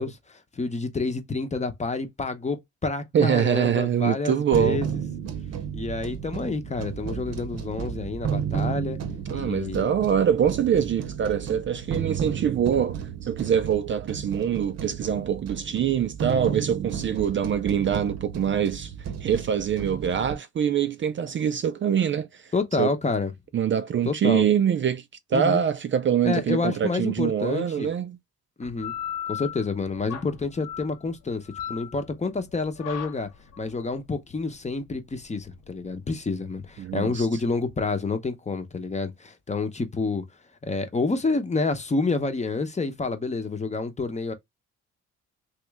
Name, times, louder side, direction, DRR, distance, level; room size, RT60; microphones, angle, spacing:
voice 1, 0.0-5.0 5.7-9.0 9.3-9.9 22.5-23.3 24.0-24.5 25.3-25.6 26.2-27.9 28.6-28.9 29.3-33.3 33.6-40.2 40.6-44.3, left 3 dB, 25° left, 0.9 m, -28 dB
voice 2, 3.1-4.8 9.3-18.9 19.2-22.4 22.8-22.9 23.5-25.0 25.3-28.2 36.8-37.3, right 8 dB, 40° right, 0.4 m, -24 dB
sound 1, 4.5-20.3, right 8 dB, 55° right, 0.8 m, -33 dB
sound 2, 28.6-37.8, left 10 dB, 85° left, 1.1 m, -39 dB
3.1 x 2.9 x 3.5 m
cardioid pair, 90°, 30 cm